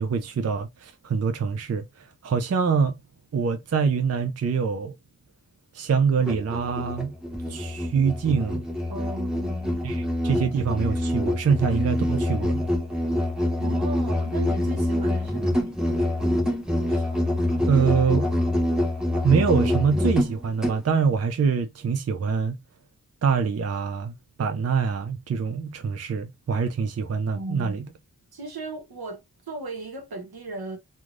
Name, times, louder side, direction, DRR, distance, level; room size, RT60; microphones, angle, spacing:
voice 1, 0.0-3.0 3.3-4.9 5.7-7.1 7.5-8.7 9.8-12.6 16.9-17.0 17.7-18.3 19.2-22.6 23.2-27.9, right 6 dB, 45° right, 0.4 m, -24 dB
Musical instrument, 6.2-20.8, left 1 dB, ahead, 0.7 m, -26 dB
voice 2, 8.9-9.8 13.6-15.7 27.3-27.8 28.3-30.8, right 3 dB, 80° right, 1.0 m, -36 dB
3.1 x 2.3 x 2.4 m
wide cardioid pair, 65°, 37 cm